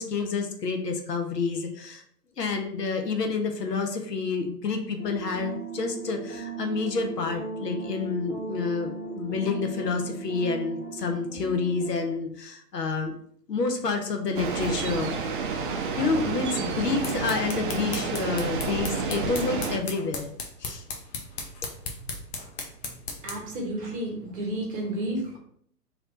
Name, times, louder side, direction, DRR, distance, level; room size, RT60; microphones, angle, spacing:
voice 1, 0.0-2.0 2.4-13.1 13.5-15.2 15.5-15.7 16.0-20.3 20.6-20.8, left 4 dB, 85° left, 4 dB, 0.9 m, -29 dB
sound 1, 5.0-12.2, right 4 dB, 5° left, 1.2 m, -37 dB
sound 2, 14.3-19.8, right 5 dB, 35° right, 0.4 m, -30 dB
sound 3, 16.7-23.5, left 4 dB, 40° left, 0.8 m, -38 dB
voice 2, 23.2-25.4, right 1 dB, 15° right, -1 dB, 0.8 m, -31 dB
3.2 x 2.9 x 3.9 m, 0.64 s
figure-of-eight pair, 115°, 48 cm